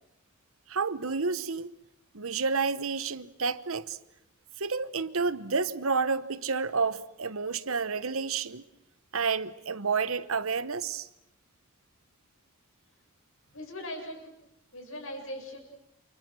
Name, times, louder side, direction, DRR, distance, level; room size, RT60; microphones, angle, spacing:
voice 1, 0.7-1.7 2.1-4.0 4.6-8.6 9.1-11.1, right 5 dB, 70° right, 1.1 m, -30 dB
voice 2, 13.5-14.3 14.7-15.6, left 1 dB, 65° left, 7.6 m, -39 dB
29.5 x 28.0 x 6.3 m
head